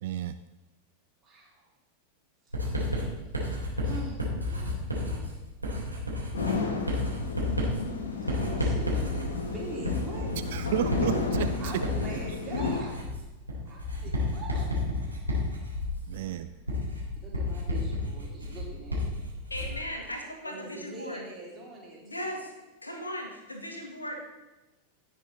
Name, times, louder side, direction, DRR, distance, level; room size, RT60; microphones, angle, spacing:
voice 1, 0.0-0.4 10.5-11.8 16.1-16.5, right 12 dB, 55° right, 12 dB, 0.4 m, -32 dB
voice 2, 1.2-1.6 3.8-4.2 4.5-5.3 8.2-10.6 11.6-13.0 13.7-14.7 16.1-16.4 17.1-19.2 20.4-22.3, right 3 dB, 25° right, -4 dB, 4.1 m, -43 dB
Writing, 2.5-19.9, left 2 dB, 85° right, 3.3 m, -32 dB
sound 1, 6.3-12.8, left 4 dB, 65° left, 1.6 m, -32 dB
voice 3, 19.5-21.2 22.0-22.5 22.8-24.2, equal, 80° left, 3 dB, 1.8 m, -37 dB
17.0 x 6.3 x 4.1 m, 1.1 s
figure-of-eight pair, 90°, 0 cm